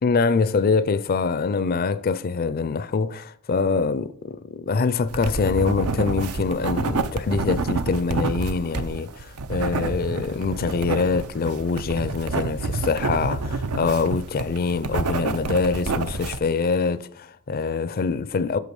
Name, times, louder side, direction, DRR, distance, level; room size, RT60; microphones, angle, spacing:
voice 1, 0.0-18.6, left 4 dB, 45° left, 0.4 m, -24 dB
sound 1, 5.1-16.4, right 3 dB, 75° right, 0.7 m, -28 dB
8.3 x 6.5 x 5.3 m
head